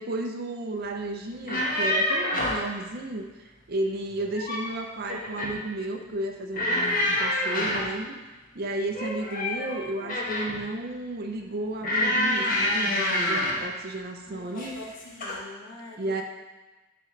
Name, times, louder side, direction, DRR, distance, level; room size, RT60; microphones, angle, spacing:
voice 1, 0.0-8.2 8.5-14.8 16.0-16.2, right 2 dB, 50° right, 4 dB, 0.6 m, -33 dB
sound 1, 1.3-2.7 4.1-4.7 5.1-5.6 6.5-8.0 8.9-10.6 11.8-13.7 14.6-14.9 15.2-15.4, left 1 dB, 45° left, 1.2 m, -27 dB
voice 2, 14.3-16.2, left 2 dB, 80° left, -2 dB, 1.3 m, -44 dB
10.5 x 3.9 x 3.2 m, 1.2 s
head